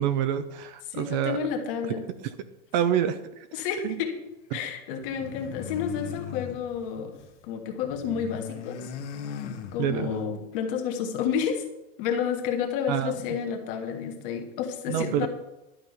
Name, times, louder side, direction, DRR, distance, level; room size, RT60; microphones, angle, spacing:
voice 1, 0.0-1.4 2.2-2.3 2.7-3.5 3.8-4.0 4.5-4.6 9.8-10.1 12.9-13.2 14.9-15.3, right 10 dB, 40° right, 11 dB, 0.5 m, -27 dB
voice 2, 0.9-2.1 3.5-4.2 4.5-7.2 7.4-8.9 9.7-11.6 12.0-15.3, left 7 dB, 45° left, 4 dB, 1.7 m, -30 dB
sound 1, 5.0-7.4 7.7-10.2, left 8 dB, 70° left, 1.5 m, -39 dB
12.0 x 5.4 x 8.1 m, 0.98 s
supercardioid pair, 170°, 37 cm